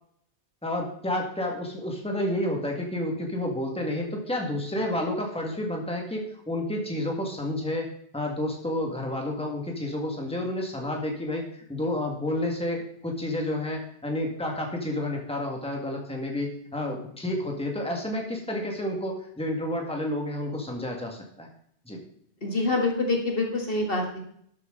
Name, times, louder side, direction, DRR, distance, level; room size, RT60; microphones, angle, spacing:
voice 1, 0.6-21.5 21.8-22.0, left 1 dB, 5° left, 0 dB, 2.0 m, -30 dB
voice 2, 22.4-24.2, left 2 dB, 50° left, 1 dB, 2.0 m, -26 dB
12.0 x 8.0 x 3.9 m, 0.67 s
omnidirectional pair, 1.2 m